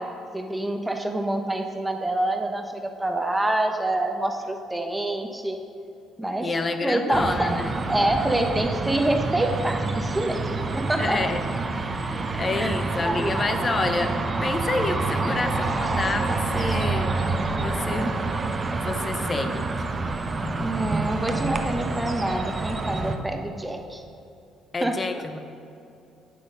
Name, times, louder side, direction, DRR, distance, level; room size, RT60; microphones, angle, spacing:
voice 1, 0.0-5.6 6.2-6.5 6.8-10.4 10.7-11.2 12.6-12.7 13.0-13.3 18.0-18.2 18.6-18.8 20.6-24.0 24.8-25.0, right 1 dB, 10° right, 4 dB, 1.1 m, -26 dB
voice 2, 6.4-7.8 11.0-11.4 12.0-14.1 14.4-17.3 17.6-18.1 18.8-19.9 24.7-25.4, left 3 dB, 35° left, 8 dB, 0.9 m, -28 dB
sound 1, 7.1-23.2, right 3 dB, 35° right, 0.8 m, -27 dB
8.6 x 8.1 x 5.2 m, 2.7 s
supercardioid pair, 65°, 0 cm